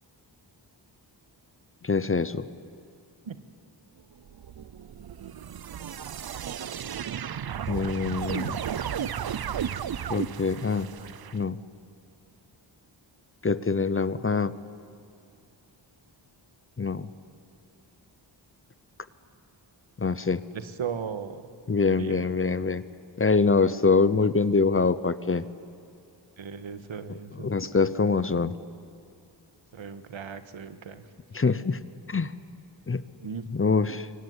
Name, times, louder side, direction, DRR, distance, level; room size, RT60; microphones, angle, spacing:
voice 1, 1.8-2.4 7.7-8.6 10.1-10.9 11.3-11.6 13.4-14.5 16.8-17.1 20.0-20.4 21.7-22.8 23.2-25.5 27.4-28.6 31.3-31.8 32.1-32.3 32.9-33.0 33.5-34.1, left 4 dB, 30° left, 15 dB, 0.7 m, -24 dB
sound 1, 4.3-11.4, right 9 dB, 55° right, 0.7 m, -34 dB
voice 2, 20.5-21.4 21.9-22.2 26.4-27.5 29.7-31.0 33.2-33.4, right 6 dB, 80° right, 11 dB, 1.6 m, -36 dB
26.0 x 23.5 x 9.7 m, 2.6 s
wide cardioid pair, 150°, 46 cm